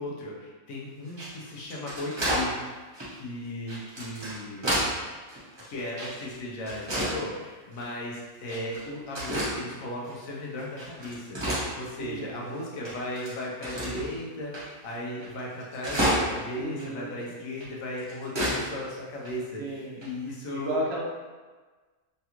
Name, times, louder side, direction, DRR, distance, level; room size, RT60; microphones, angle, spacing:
voice 1, 0.0-2.5 3.1-4.6 5.6-20.8, left 1 dB, 85° left, -3 dB, 1.1 m, -36 dB
sound 1, 1.1-2.5 2.9-3.1 3.7-5.0 5.3-6.3 6.7-7.2 7.7-7.9 8.5-8.8 9.2-9.5 10.0-10.1 10.6-12.2 12.5-12.6 12.9-14.1 14.5-14.6 14.9-15.0 15.2-16.5 16.8-16.9 17.6-18.6 18.9-19.0 19.2-19.3 20.0-20.3, equal, 25° right, 0.8 m, -30 dB
voice 2, 12.0-12.3 16.6-17.3 19.6-20.0 20.5-21.0, right 2 dB, 65° right, -4 dB, 0.7 m, -33 dB
3.3 x 2.3 x 2.9 m, 1.3 s
omnidirectional pair, 1.4 m